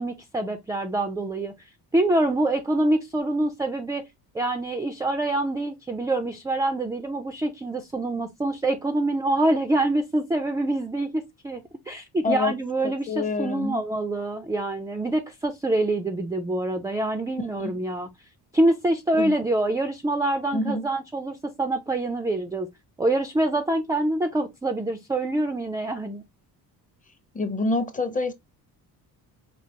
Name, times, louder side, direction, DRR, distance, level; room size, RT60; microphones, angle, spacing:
voice 1, 0.0-1.5 1.9-4.0 4.3-18.1 18.5-22.7 23.0-26.2, right 2 dB, 10° right, 0.3 m, -25 dB
voice 2, 12.2-12.6 12.8-13.8 17.6-17.7 19.2-19.3 20.5-20.9 27.3-28.3, left 3 dB, 20° left, 0.6 m, -27 dB
4.6 x 2.4 x 2.7 m
cardioid pair, 115°, 40 cm